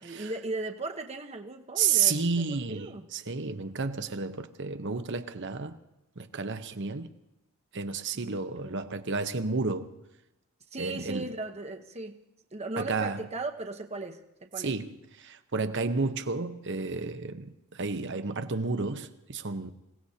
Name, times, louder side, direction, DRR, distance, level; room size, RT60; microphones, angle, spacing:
voice 1, 0.0-3.0 8.1-8.9 10.7-12.2 12.5-14.7, right 2 dB, 30° right, 1.0 m, -37 dB
voice 2, 1.8-5.8 6.2-7.1 7.7-9.9 10.8-11.3 12.8-13.3 14.6-19.7, right 5 dB, 60° right, 0.9 m, -31 dB
27.5 x 17.5 x 2.9 m
head